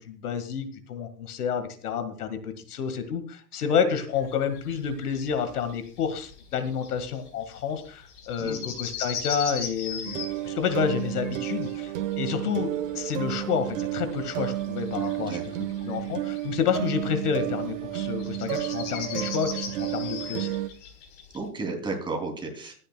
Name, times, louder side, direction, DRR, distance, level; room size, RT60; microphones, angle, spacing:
voice 1, 0.0-15.4 15.8-20.5, left 7 dB, 65° left, 10 dB, 1.9 m, -29 dB
sound 1, 4.1-21.4, left 7 dB, 45° left, 4.1 m, -40 dB
voice 2, 8.4-8.8 15.2-15.4 21.3-22.7, right 3 dB, 10° right, 1 dB, 3.0 m, -33 dB
sound 2, 10.0-20.7, right 14 dB, 50° right, 1.3 m, -32 dB
23.5 x 9.9 x 2.3 m, 0.42 s
hypercardioid pair, 135°, 48 cm